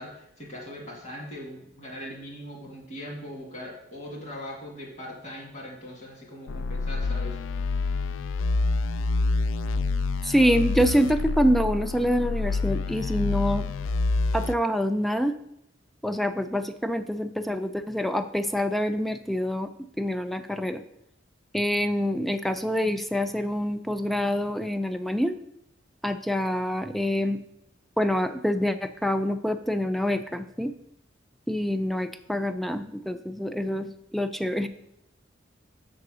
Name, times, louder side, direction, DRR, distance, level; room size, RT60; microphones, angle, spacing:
voice 1, 0.0-7.4, left 1 dB, 40° left, -1 dB, 2.0 m, -40 dB
sound 1, 6.5-14.5, left 3 dB, 85° left, 0.3 m, -27 dB
voice 2, 10.2-13.7 14.3-15.4 16.0-19.7 20.0-20.8 21.5-25.4 26.0-27.4 28.0-30.7 31.5-34.7, equal, ahead, 10 dB, 0.3 m, -26 dB
6.7 x 3.8 x 6.1 m, 0.83 s
head